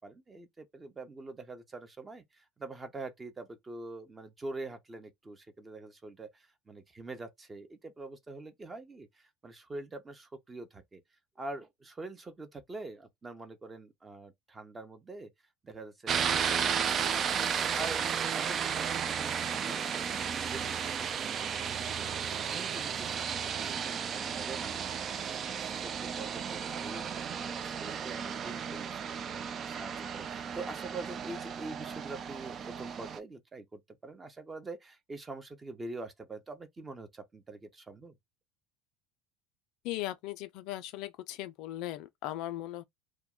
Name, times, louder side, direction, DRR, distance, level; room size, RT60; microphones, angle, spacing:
voice 1, 0.0-11.0 11.4-15.3 15.6-17.3 17.7-21.4 21.6-38.1, right 2 dB, 20° right, 0.7 m, -45 dB
sound 1, 16.1-33.2, right 7 dB, 35° right, 0.3 m, -34 dB
voice 2, 39.8-42.8, left 15 dB, 60° left, 0.3 m, -38 dB
2.2 x 2.0 x 3.6 m
hypercardioid pair, 80°, 0 cm